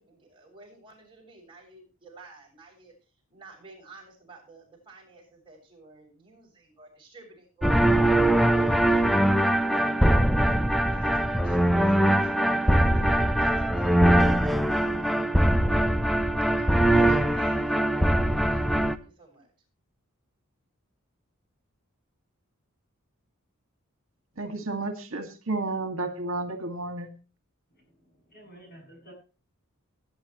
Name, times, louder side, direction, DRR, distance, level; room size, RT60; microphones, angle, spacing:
voice 1, 0.0-2.9 3.3-8.0 8.3-9.4 9.8-10.0 10.3-15.1 16.6-19.5, right 2 dB, 25° right, -1 dB, 7.0 m, -51 dB
sound 1, 7.6-19.0, right 1 dB, ahead, 0.7 m, -22 dB
voice 2, 24.4-27.1, right 2 dB, 65° right, 7 dB, 2.1 m, -32 dB
voice 3, 27.7-29.1, right 1 dB, 45° left, 2 dB, 8.0 m, -51 dB
19.5 x 10.5 x 3.0 m, 0.34 s
head